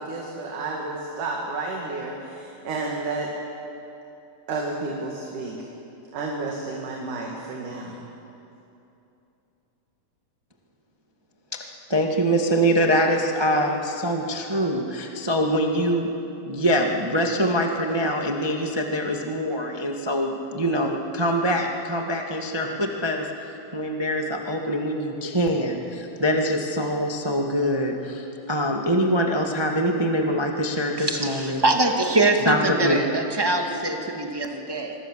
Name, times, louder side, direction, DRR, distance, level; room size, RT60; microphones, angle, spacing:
voice 1, 0.0-3.3 4.5-5.7 6.1-8.0, right 3 dB, 65° right, -1 dB, 3.6 m, -31 dB
voice 2, 11.9-16.1 16.5-23.3 23.7-31.6 32.4-33.0, equal, 30° right, 2 dB, 0.5 m, -24 dB
voice 3, 31.0-34.9, right 2 dB, 15° right, 2 dB, 1.0 m, -23 dB
26.5 x 23.5 x 7.5 m, 2.8 s
omnidirectional pair, 4.0 m